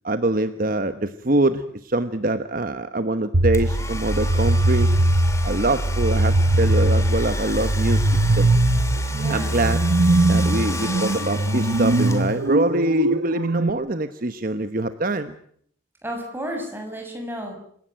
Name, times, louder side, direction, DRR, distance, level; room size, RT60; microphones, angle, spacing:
voice 1, 0.0-5.0 5.4-8.1 8.4-8.5 9.3-9.8 10.3-15.3, right 2 dB, 45° right, 10 dB, 1.1 m, -24 dB
sound 1, 3.3-13.7, right 1 dB, 80° right, 1.2 m, -20 dB
Domestic sounds home sounds, 3.5-12.7, left 2 dB, 15° left, 2.6 m, -34 dB
voice 2, 9.1-9.6 16.0-17.6, equal, 10° right, 2 dB, 6.9 m, -32 dB
28.5 x 17.0 x 9.1 m, 0.65 s
head